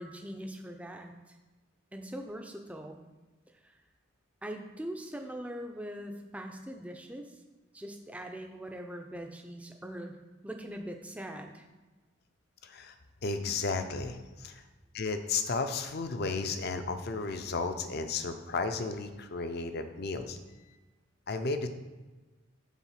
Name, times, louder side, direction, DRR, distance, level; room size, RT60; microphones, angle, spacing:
voice 1, 0.0-1.4 1.9-3.0 3.6-3.8 4.4-7.4 7.7-10.1 10.4-11.7, equal, 5° right, 3 dB, 0.5 m, -42 dB
voice 2, 12.6-12.9 13.2-14.6 14.9-20.4 21.3-21.7, left 4 dB, 50° left, 8 dB, 0.5 m, -33 dB
7.2 x 4.1 x 5.7 m, 1.2 s
head